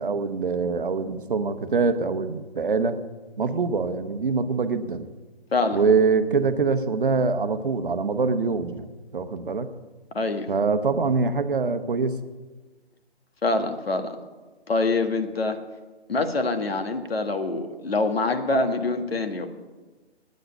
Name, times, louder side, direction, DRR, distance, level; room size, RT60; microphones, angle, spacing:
voice 1, 0.0-3.0 3.4-5.1 5.7-9.7 10.5-12.2, right 4 dB, 55° right, 10 dB, 0.9 m, -24 dB
voice 2, 10.1-10.5 13.4-14.2 14.7-15.6 16.1-19.5, left 3 dB, 65° left, 7 dB, 1.5 m, -25 dB
9.3 x 7.9 x 8.9 m, 1.3 s
figure-of-eight pair, 140°, 32 cm